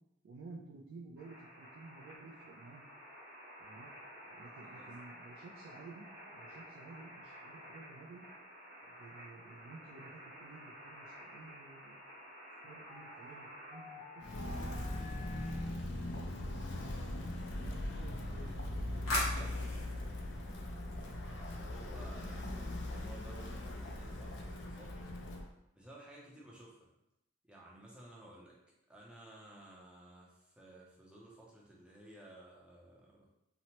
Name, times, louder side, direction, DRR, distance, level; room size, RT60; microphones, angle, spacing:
voice 1, 0.2-2.8 3.6-3.9 4.3-6.1 6.3-8.2 8.8-12.0 12.6-16.6 17.4-20.0, right 3 dB, 90° right, -1 dB, 0.4 m, -54 dB
sound 1, 1.2-15.7, equal, 50° right, 0.9 m, -52 dB
Walk footsteps, 14.2-25.5, left 1 dB, 60° left, 0.3 m, -40 dB
sound 2, 18.5-21.6, left 1 dB, 80° left, 0.9 m, -42 dB
voice 2, 21.2-25.2 25.7-26.9 27.4-28.6 28.9-33.3, right 1 dB, 5° right, -5 dB, 0.5 m, -56 dB
2.8 x 2.0 x 2.8 m, 0.86 s
head